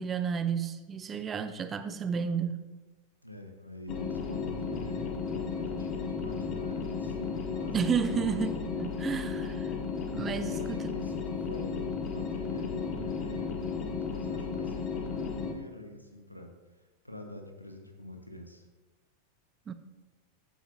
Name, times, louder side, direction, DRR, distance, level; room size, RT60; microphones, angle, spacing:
voice 1, 0.0-2.6 7.7-9.7 10.1-10.9 19.7-19.8, right 6 dB, 20° right, 11 dB, 0.6 m, -32 dB
voice 2, 3.2-7.7 8.1-8.5 10.2-16.5 17.0-18.7, left 1 dB, 90° left, 5 dB, 1.2 m, -45 dB
sound 1, 3.9-15.5, left 5 dB, 30° left, 1.0 m, -34 dB
15.0 x 8.1 x 2.6 m, 1.2 s
figure-of-eight pair, 90°, 0 cm